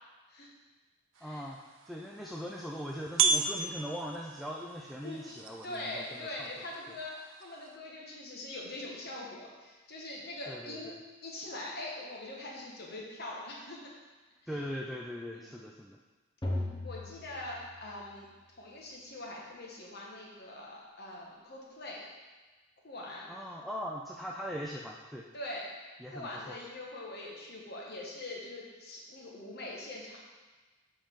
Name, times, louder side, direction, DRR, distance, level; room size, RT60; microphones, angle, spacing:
sound 1, 1.1-7.8, right 5 dB, 80° right, 0.6 m, -36 dB
voice 1, 1.2-1.6 1.9-6.3 10.5-11.0 14.5-16.0 23.3-25.2 26.0-26.6, equal, ahead, -3 dB, 0.4 m, -40 dB
voice 2, 5.6-13.9 15.3-15.6 16.8-18.3 18.6-22.1 22.8-23.3 25.3-25.7 26.1-30.2, left 2 dB, 55° left, -3 dB, 1.3 m, -43 dB
sound 2, 16.4-18.4, left 1 dB, 20° left, 0.9 m, -38 dB
7.8 x 5.0 x 3.6 m, 1.3 s
head